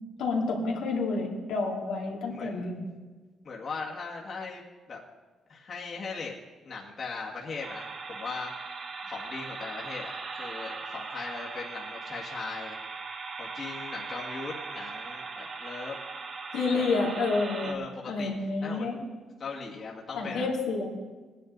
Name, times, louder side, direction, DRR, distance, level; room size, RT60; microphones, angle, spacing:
voice 1, 0.2-3.0 16.5-19.0 20.1-20.9, left 3 dB, 85° left, -2 dB, 2.8 m, -29 dB
voice 2, 2.3-2.7 3.4-4.6 4.9-5.0 5.5-6.3 6.6-8.5 9.0-12.8 13.4-16.0 16.8-16.9 17.6-18.3 18.6-18.9 19.4-20.5, left 4 dB, 50° left, -3 dB, 2.0 m, -39 dB
sound 1, 7.6-17.7, right 4 dB, 45° right, 1.5 m, -39 dB
18.5 x 10.0 x 4.0 m, 1.3 s
cardioid pair, 90°, 0 cm